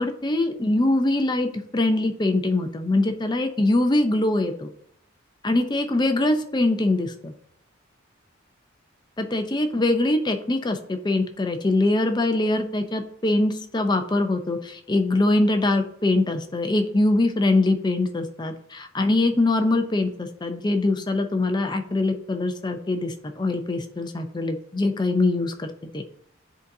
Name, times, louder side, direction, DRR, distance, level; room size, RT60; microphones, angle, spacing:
voice 1, 0.0-4.7 5.4-7.3 9.2-25.7 25.9-26.0, left 2 dB, 20° left, 6 dB, 0.5 m, -23 dB
10.0 x 4.0 x 2.7 m, 0.70 s
head